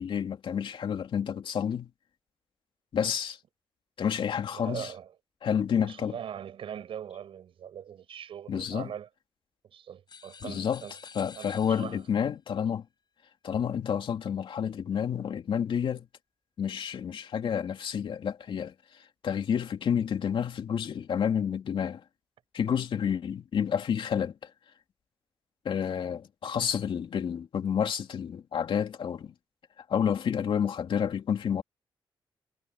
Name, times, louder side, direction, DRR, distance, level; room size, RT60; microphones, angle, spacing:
voice 1, 0.0-1.9 2.9-3.4 4.0-4.9 5.4-6.2 8.5-8.9 10.4-10.8 11.1-12.9 13.4-16.1 16.6-22.0 22.5-24.5 25.6-29.3 29.8-31.6, left 8 dB, 70° left, 2.8 m, -30 dB
voice 2, 4.5-5.1 5.7-9.1 9.6-10.9 11.4-12.0, right 9 dB, 80° right, 7.1 m, -41 dB
sound 1, 10.1-12.2, left 6 dB, 55° left, 4.7 m, -50 dB
cardioid pair, 100°, 9 cm